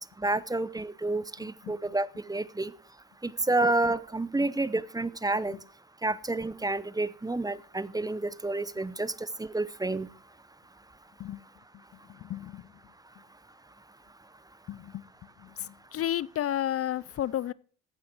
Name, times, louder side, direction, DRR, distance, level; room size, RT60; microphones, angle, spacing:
voice 1, 0.2-2.7 3.2-5.6 6.0-9.1 9.4-10.1, right 2 dB, 10° right, 0.7 m, -29 dB
voice 2, 1.4-1.8 5.5-5.6 11.2-11.4 12.1-12.7 14.7-15.0 15.4-17.5, left 11 dB, 50° left, 0.5 m, -33 dB
15.0 x 9.3 x 4.6 m
cardioid pair, 90°, 30 cm